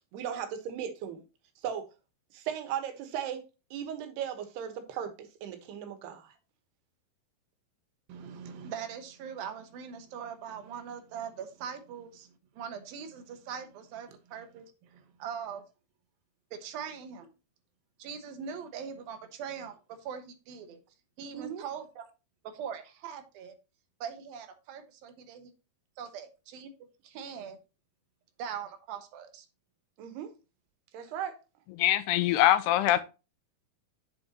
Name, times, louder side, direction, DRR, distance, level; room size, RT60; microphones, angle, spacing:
voice 1, 0.1-1.2 1.6-1.9 2.3-3.4 3.7-6.3 21.3-21.6 30.0-30.3 30.9-31.4, right 9 dB, 90° right, 3.4 m, -37 dB
voice 2, 8.1-15.6 16.5-17.3 18.0-20.8 21.2-22.1 22.4-23.5 24.0-25.5 26.0-26.7 27.0-27.6 28.4-29.5, right 7 dB, 70° right, 2.8 m, -41 dB
voice 3, 31.8-33.0, left 14 dB, 85° left, 2.8 m, -23 dB
7.9 x 7.6 x 2.9 m
omnidirectional pair, 4.5 m